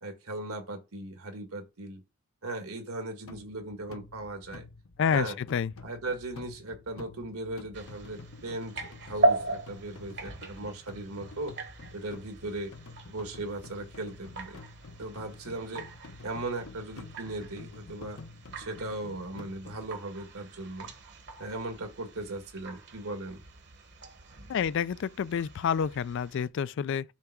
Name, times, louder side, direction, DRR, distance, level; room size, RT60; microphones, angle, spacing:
voice 1, 0.0-2.0 2.4-4.7 5.1-5.4 5.8-11.5 11.9-12.7 13.1-14.6 15.0-15.9 16.2-18.2 18.6-20.9 21.4-23.4, right 2 dB, 80° right, 1.9 m, -38 dB
sound 1, 3.3-19.9, left 3 dB, 75° left, 0.9 m, -49 dB
voice 2, 5.0-5.7 24.5-27.0, left 7 dB, 55° left, 0.3 m, -29 dB
sound 2, 7.7-26.5, right 2 dB, 55° right, 1.2 m, -38 dB
7.1 x 3.4 x 6.1 m
head